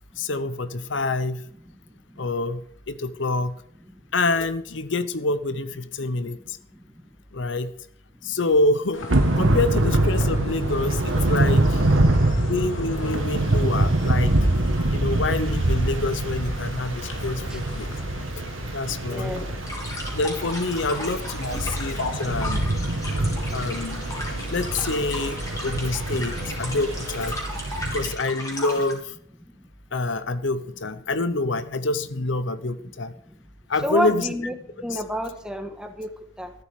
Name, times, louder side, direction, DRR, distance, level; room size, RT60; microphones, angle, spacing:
voice 1, 0.2-1.4 2.2-3.6 4.1-6.6 7.3-7.7 8.2-9.1 9.4-11.9 12.5-14.3 14.9-17.9 18.7-19.4 20.1-22.7 23.5-24.1 24.5-27.4 27.9-29.2 29.9-33.1 33.7-34.3 34.9-35.0, left 2 dB, 70° left, 13 dB, 0.8 m, -26 dB
voice 2, 1.9-2.2 3.9-4.0 6.1-7.0 8.2-8.4 17.5-17.6 19.1-19.5 19.9-20.0 21.6-21.8 29.5-29.7 32.8-32.9 33.8-36.5, equal, 5° right, 5 dB, 1.5 m, -32 dB
sound 1, 8.9-27.3, left 2 dB, 90° left, 2.6 m, -39 dB
Thunder / Rain, 9.1-28.1, right 1 dB, 90° right, 1.6 m, -24 dB
sound 2, 19.6-28.9, left 1 dB, 15° left, 3.5 m, -36 dB
14.0 x 12.0 x 5.1 m, 0.65 s
head